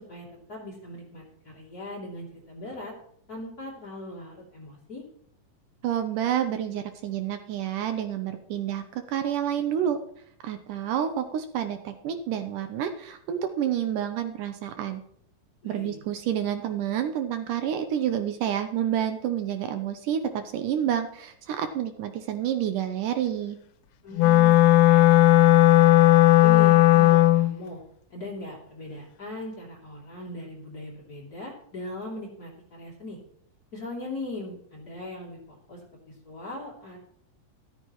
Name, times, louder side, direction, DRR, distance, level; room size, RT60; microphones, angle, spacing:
voice 1, 0.0-2.9 3.3-5.0 15.6-16.0 24.0-25.9 26.4-27.8 28.1-33.2 33.7-35.8 36.1-37.1, left 1 dB, 30° left, -3 dB, 3.1 m, -39 dB
voice 2, 5.8-10.0 10.4-15.0 15.6-23.6, right 10 dB, 75° right, 8 dB, 2.2 m, -29 dB
Wind instrument woodwind instrument, 24.2-27.6, left 14 dB, 90° left, 2.4 m, -16 dB
13.5 x 13.0 x 3.0 m, 0.66 s
omnidirectional pair, 4.0 m